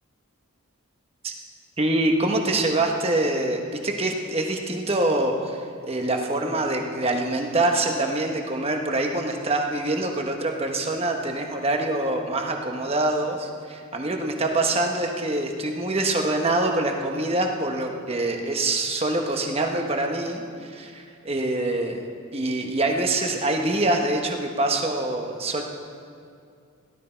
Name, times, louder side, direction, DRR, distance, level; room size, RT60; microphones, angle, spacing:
voice 1, 1.8-5.6 5.8-22.0 22.3-25.6, right 2 dB, 25° right, 3 dB, 1.1 m, -25 dB
17.0 x 12.0 x 4.5 m, 2.4 s
head